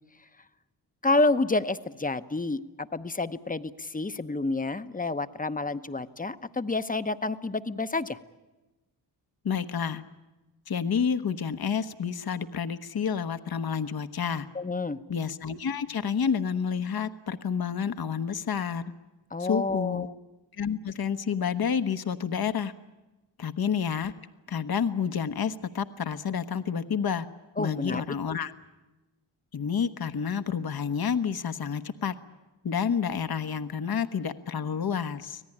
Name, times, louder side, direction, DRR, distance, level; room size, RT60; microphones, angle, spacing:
voice 1, 1.0-8.2 14.5-15.0 19.3-20.1 27.6-28.0, left 3 dB, 20° left, 11 dB, 0.9 m, -29 dB
voice 2, 9.4-10.0 10.7-14.5 15.1-18.8 19.4-20.1 20.6-22.7 23.4-24.1 24.5-27.3 27.6-28.5 29.5-32.1 32.6-35.4, left 7 dB, 55° left, 10 dB, 1.1 m, -29 dB
25.5 x 17.5 x 9.9 m, 1.1 s
cardioid pair, 65°, 45 cm